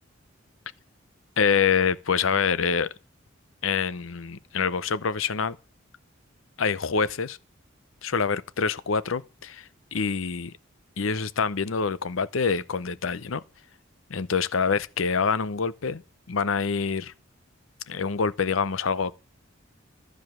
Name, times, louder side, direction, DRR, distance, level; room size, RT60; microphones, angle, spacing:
voice 1, 1.4-2.9 3.6-5.6 6.6-7.4 8.0-10.5 11.0-13.4 14.1-16.0 16.3-17.1 17.9-19.1, left 5 dB, 80° left, 0.7 m, -26 dB
12.5 x 5.1 x 7.6 m
head